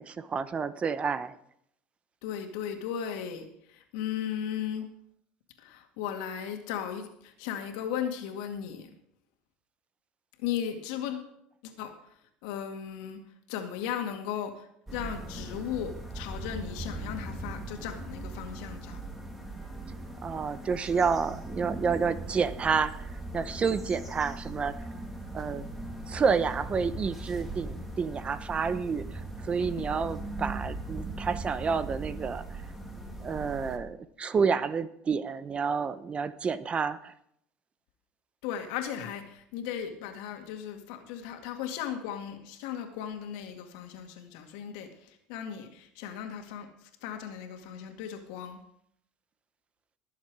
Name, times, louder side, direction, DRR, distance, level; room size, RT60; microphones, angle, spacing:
voice 1, 0.0-1.4 20.2-24.8 25.3-25.7 26.1-32.4 33.2-37.1, right 5 dB, 30° right, 15 dB, 0.8 m, -29 dB
voice 2, 2.2-4.9 5.6-8.9 10.4-11.3 11.6-11.9 12.4-13.2 13.5-19.0 38.4-48.6, left 9 dB, 75° left, 5 dB, 2.2 m, -36 dB
sound 1, 14.9-33.8, right 2 dB, 5° right, 2.4 m, -39 dB
19.5 x 7.4 x 4.8 m, 0.73 s
supercardioid pair, 95°, 4 cm